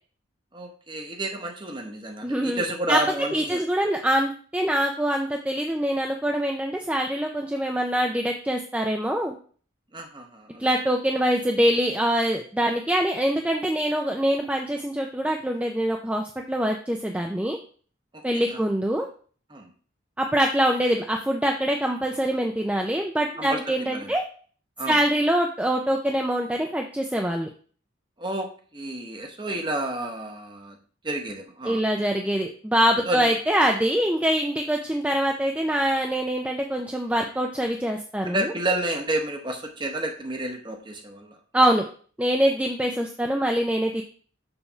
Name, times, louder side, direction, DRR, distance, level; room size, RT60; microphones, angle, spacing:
voice 1, 0.5-3.6 9.9-10.7 18.1-18.6 19.5-19.7 23.4-24.1 24.8-25.0 28.2-30.8 31.0-31.8 33.1-33.3 38.2-41.4, right 1 dB, 20° right, 3 dB, 0.9 m, -30 dB
voice 2, 2.2-2.6 2.9-3.0 3.3-9.3 10.6-17.6 18.2-19.1 20.2-24.2 24.9-27.5 31.6-38.5 41.5-41.8 42.2-44.0, equal, 5° right, 2 dB, 0.4 m, -24 dB
7.0 x 3.4 x 5.6 m, 0.43 s
head